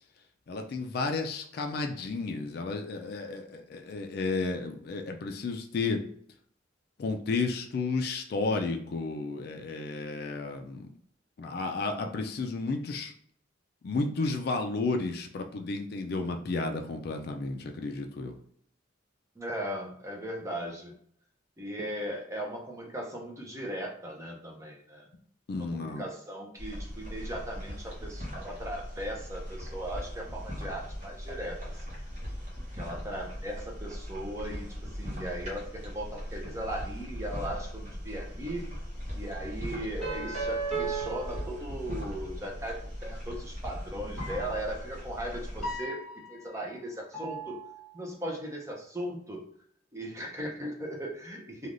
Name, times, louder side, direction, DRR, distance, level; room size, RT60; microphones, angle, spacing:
voice 1, 0.5-6.0 7.0-10.9 11.4-13.1 13.8-18.3 25.5-26.0, left 3 dB, 50° left, 4 dB, 0.3 m, -32 dB
voice 2, 19.4-21.0 21.6-25.1 25.6-31.8 32.7-38.6 39.1-46.0 46.3-47.6 47.9-49.4 49.9-51.7, right 1 dB, 15° right, -1 dB, 0.5 m, -38 dB
sound 1, 26.6-45.8, equal, 40° right, 0.8 m, -39 dB
sound 2, 40.0-42.2 44.2-44.7 45.6-46.6 47.1-47.9, right 4 dB, ahead, 1.2 m, -36 dB
3.3 x 2.3 x 2.5 m, 0.64 s
head